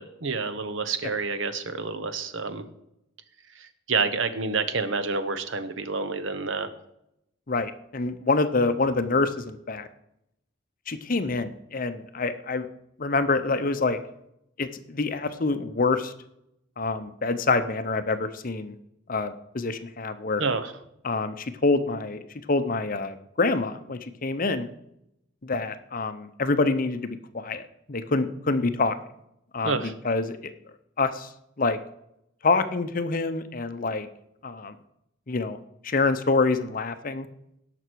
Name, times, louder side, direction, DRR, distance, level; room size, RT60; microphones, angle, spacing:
voice 1, 0.0-2.6 3.5-6.7 20.4-20.7 29.6-29.9, right 4 dB, 75° right, 11 dB, 1.0 m, -28 dB
voice 2, 7.5-9.9 10.9-12.7 13.0-14.0 14.6-16.1 16.8-18.7 19.1-20.4 21.0-22.2 22.5-24.7 25.4-27.6 27.9-29.0 29.5-30.5 31.0-31.3 31.6-31.8 32.4-34.1 34.4-34.7 35.3-35.6 35.8-37.3, left 3 dB, 45° left, 10 dB, 0.7 m, -26 dB
18.0 x 6.0 x 4.6 m, 0.81 s
head